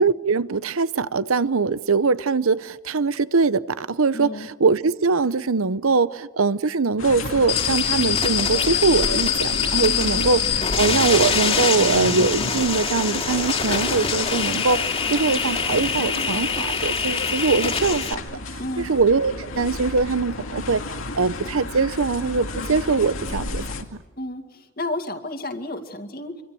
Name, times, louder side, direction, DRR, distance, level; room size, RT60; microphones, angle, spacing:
voice 1, 0.0-10.4 10.8-14.8 15.1-18.2 18.8-20.8 21.1-23.6, right 4 dB, 80° right, 0.8 m, -22 dB
voice 2, 4.1-4.5 9.8-10.3 18.6-18.9 24.2-26.4, left 1 dB, 45° left, 2.2 m, -32 dB
sound 1, 7.0-23.8, left 2 dB, 75° left, 2.3 m, -32 dB
sound 2, 7.5-18.1, left 6 dB, 30° left, 2.4 m, -24 dB
26.0 x 25.5 x 7.8 m
head